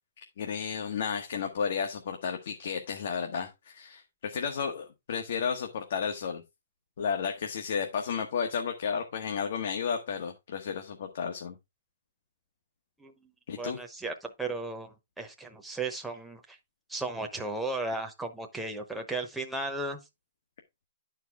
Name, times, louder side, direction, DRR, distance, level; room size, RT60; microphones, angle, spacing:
voice 1, 0.4-6.4 7.0-11.5 13.5-13.8, left 6 dB, 55° left, 1.1 m, -32 dB
voice 2, 13.6-16.4 16.9-20.0, right 2 dB, 5° right, 0.8 m, -35 dB
10.5 x 4.6 x 3.4 m
hypercardioid pair, 165°, 0 cm